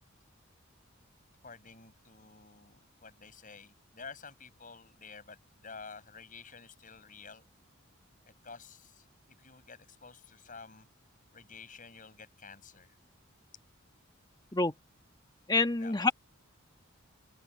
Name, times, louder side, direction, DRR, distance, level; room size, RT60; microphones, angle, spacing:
voice 1, 1.4-7.4 8.2-10.9 11.3-13.0 15.8-16.1, left 5 dB, 40° left, 7.8 m, -51 dB
voice 2, 15.5-16.1, left 3 dB, 20° left, 1.4 m, -27 dB
open air
head